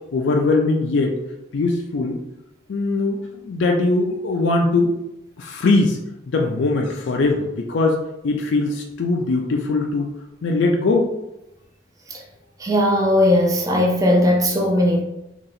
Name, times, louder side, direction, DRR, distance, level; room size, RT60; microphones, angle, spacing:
voice 1, 0.1-1.2 1.5-2.2 2.7-4.9 5.4-6.0 6.3-10.1 10.4-11.1, left 3 dB, 85° left, 1 dB, 0.4 m, -21 dB
voice 2, 12.6-15.0, left 1 dB, 20° right, 0 dB, 0.5 m, -18 dB
2.9 x 2.7 x 4.0 m, 0.89 s
head